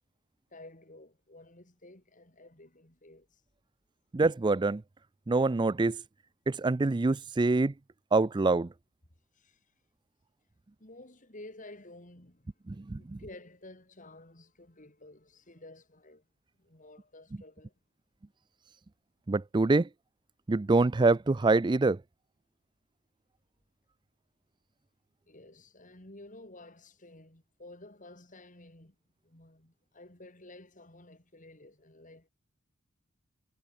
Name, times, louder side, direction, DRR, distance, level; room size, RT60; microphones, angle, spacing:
voice 1, 0.5-3.4 9.3-9.7 10.8-12.6 13.0-16.2 16.6-17.7 25.3-29.0 29.2-32.3, left 2 dB, 35° left, 3.9 m, -52 dB
voice 2, 4.1-4.8 5.3-6.0 6.5-7.7 8.1-8.7 12.7-13.2 19.3-19.9 20.5-22.0, right 3 dB, 20° right, 0.4 m, -25 dB
head